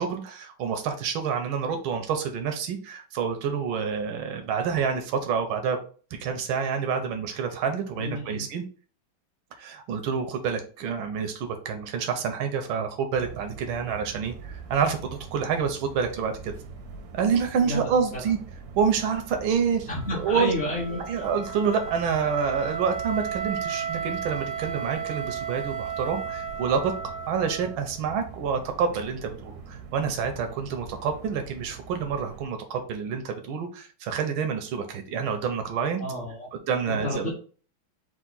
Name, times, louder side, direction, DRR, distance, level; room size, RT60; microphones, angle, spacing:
voice 1, 0.0-5.8 6.1-8.6 9.6-14.3 14.7-16.5 17.1-18.4 18.8-19.9 20.2-20.5 21.0-26.9 27.3-36.0 36.5-37.3, right 6 dB, 90° right, 6 dB, 1.5 m, -28 dB
voice 2, 7.9-8.5 17.6-18.2 19.9-21.3 36.0-36.5 36.9-37.3, left 1 dB, 40° left, -5 dB, 1.0 m, -31 dB
sound 1, 13.1-32.4, right 5 dB, 65° right, 0.9 m, -43 dB
Wind instrument woodwind instrument, 19.9-27.9, right 7 dB, 45° right, 0.6 m, -34 dB
4.7 x 2.5 x 3.9 m, 0.40 s
omnidirectional pair, 2.2 m